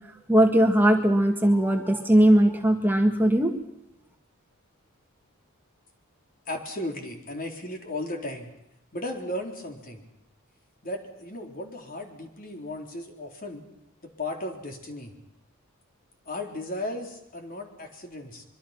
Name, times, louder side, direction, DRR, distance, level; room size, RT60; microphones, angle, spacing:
voice 1, 0.3-3.5, right 1 dB, 10° right, 3 dB, 1.9 m, -19 dB
voice 2, 6.5-8.5 8.9-10.0 10.8-13.6 14.0-15.1 16.3-18.4, left 1 dB, 45° left, 2 dB, 4.0 m, -35 dB
25.0 x 23.5 x 5.9 m, 0.86 s
head